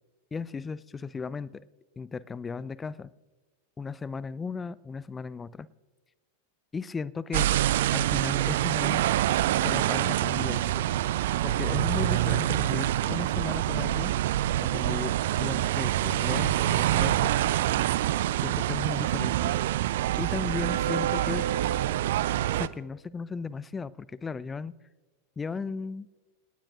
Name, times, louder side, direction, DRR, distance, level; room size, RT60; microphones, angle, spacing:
voice 1, 0.3-1.5 2.0-3.1 3.8-5.7 6.7-7.5 7.9-9.1 9.6-10.8 11.4-14.1 14.6-17.4 18.4-19.5 20.2-21.4 22.5-24.7 25.4-26.1, left 5 dB, 15° left, 21 dB, 0.5 m, -35 dB
sound 1, 7.3-22.7, right 13 dB, 55° right, 0.5 m, -26 dB
28.0 x 19.0 x 2.5 m, 1.2 s
figure-of-eight pair, 90°, 0 cm